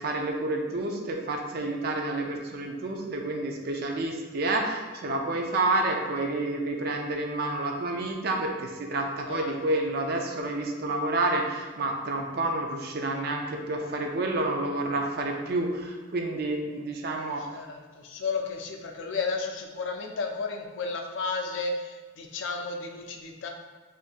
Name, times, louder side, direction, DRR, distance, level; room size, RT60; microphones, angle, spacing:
voice 1, 0.0-17.4, right 2 dB, 55° right, 2 dB, 0.4 m, -29 dB
voice 2, 9.3-9.6 17.4-23.5, left 4 dB, 75° left, 3 dB, 0.4 m, -33 dB
3.8 x 2.5 x 2.5 m, 1.3 s
head